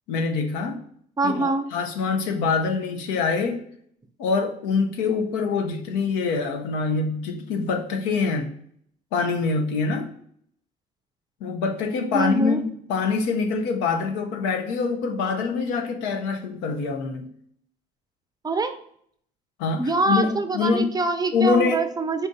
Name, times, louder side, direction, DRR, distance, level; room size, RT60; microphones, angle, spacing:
voice 1, 0.1-0.8 1.2-3.6 4.2-8.5 9.1-10.1 11.4-17.3 19.6-21.0 21.3-21.9, left 4 dB, 80° left, 0.7 m, -25 dB
voice 2, 1.2-1.7 12.1-12.6 18.4-18.8 19.8-22.3, right 2 dB, 20° right, 0.5 m, -24 dB
4.1 x 2.6 x 3.5 m
hypercardioid pair, 65°, 19 cm